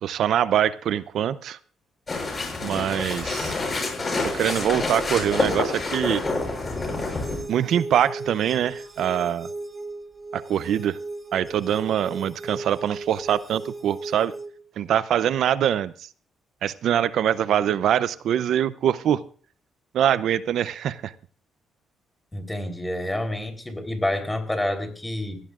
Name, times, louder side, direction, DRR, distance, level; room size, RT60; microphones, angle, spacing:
voice 1, 0.0-1.6 2.6-3.5 4.2-6.2 7.5-9.5 10.3-11.0 11.3-14.3 14.8-16.1 16.6-19.2 19.9-21.1, right 10 dB, 75° right, 15 dB, 0.6 m, -24 dB
sound 1, 2.1-7.4, left 3 dB, 35° left, 6.8 m, -27 dB
sound 2, 4.5-14.5, right 2 dB, 30° right, 2.1 m, -38 dB
voice 2, 22.3-25.4, left 1 dB, 10° left, 6 dB, 3.6 m, -28 dB
21.0 x 16.5 x 2.5 m, 0.43 s
cardioid pair, 90°, 0 cm